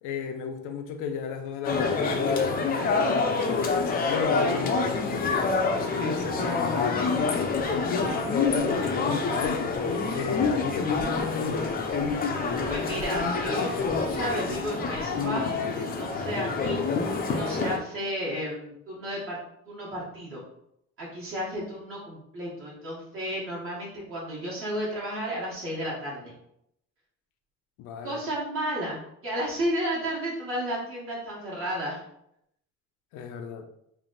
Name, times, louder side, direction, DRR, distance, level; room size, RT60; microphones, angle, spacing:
voice 1, 0.0-9.8 10.1-11.7 27.8-28.2 33.1-33.7, left 5 dB, 90° left, 0.6 m, -34 dB
sound 1, 1.6-17.8, left 4 dB, 30° left, 0.5 m, -27 dB
voice 2, 12.7-16.8 17.3-19.4 19.6-20.4 21.0-26.3 28.0-32.0, equal, 45° right, 1.4 m, -33 dB
3.4 x 2.5 x 3.9 m
cardioid pair, 150°, 30 cm